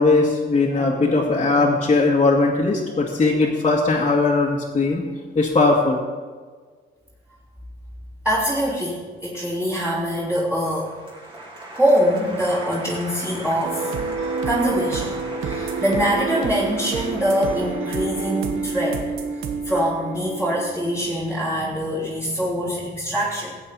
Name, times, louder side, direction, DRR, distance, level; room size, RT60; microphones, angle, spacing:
voice 1, 0.0-5.0 5.4-6.0, left 3 dB, 30° left, -5 dB, 2.0 m, -19 dB
voice 2, 8.2-10.9 11.7-13.9 14.4-19.0 19.3-23.6, equal, 5° right, -9 dB, 3.2 m, -23 dB
Applause, 10.6-19.6, right 1 dB, 25° right, 3.6 m, -39 dB
sound 1, 13.6-21.0, right 4 dB, 85° right, 1.1 m, -28 dB
15.0 x 8.7 x 4.2 m, 1.5 s
cardioid pair, 90°, 20 cm